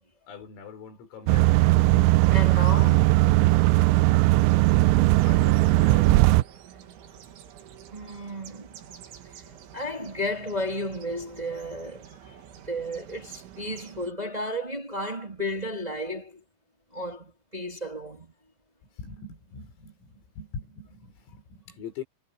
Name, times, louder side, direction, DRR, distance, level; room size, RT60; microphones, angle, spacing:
voice 1, 0.3-1.5 5.2-6.4 19.0-22.0, left 6 dB, 85° left, 8.0 m, -42 dB
sound 1, 1.3-6.4, right 19 dB, 85° right, 2.7 m, -19 dB
sound 2, 2.1-14.1, right 9 dB, 70° right, 4.6 m, -48 dB
voice 2, 2.3-3.4 7.9-8.7 9.7-12.1 12.6-16.3 16.9-18.3, equal, 10° right, 2.4 m, -33 dB
omnidirectional pair, 5.9 m